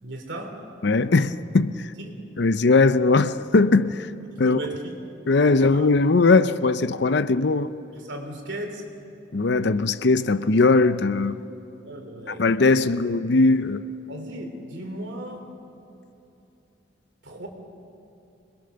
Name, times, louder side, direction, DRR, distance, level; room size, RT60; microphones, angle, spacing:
voice 1, 0.0-0.6 2.0-2.2 4.4-4.9 5.4-5.9 7.9-8.8 11.8-12.5 14.1-15.5 17.2-17.5, right 1 dB, 65° right, 3.1 m, -36 dB
voice 2, 0.8-1.7 2.4-4.1 4.4-4.6 5.3-7.7 9.3-11.4 12.4-13.8, left 3 dB, 60° left, 0.6 m, -19 dB
26.0 x 21.0 x 6.8 m
head